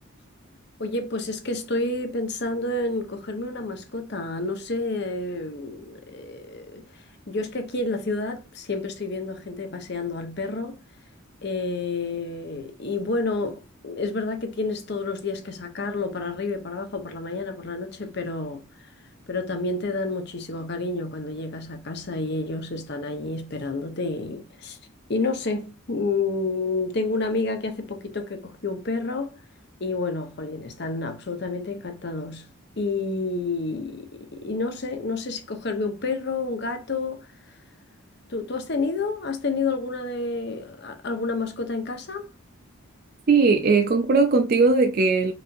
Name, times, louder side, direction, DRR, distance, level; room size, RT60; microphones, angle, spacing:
voice 1, 0.8-10.8 11.4-18.6 19.3-24.8 25.1-29.3 29.8-32.4 32.8-37.3 38.3-42.3, left 3 dB, 50° left, 0.8 m, -29 dB
voice 2, 43.3-45.3, right 4 dB, 45° right, 0.4 m, -19 dB
4.9 x 2.8 x 2.4 m
head